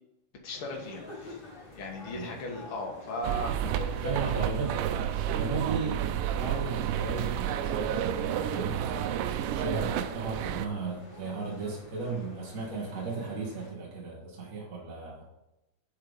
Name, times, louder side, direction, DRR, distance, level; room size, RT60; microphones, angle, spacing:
voice 1, 0.4-1.4 1.7-4.2, left 1 dB, 50° left, 1 dB, 2.0 m, -37 dB
sound 1, 0.5-13.7, left 2 dB, 30° left, 1.0 m, -49 dB
sound 2, 3.2-10.7, right 10 dB, 85° right, 2.2 m, -31 dB
voice 2, 4.0-4.8 5.3-9.1 9.5-15.2, right 4 dB, 40° right, -2 dB, 1.2 m, -35 dB
7.6 x 5.8 x 5.1 m, 0.91 s
omnidirectional pair, 3.7 m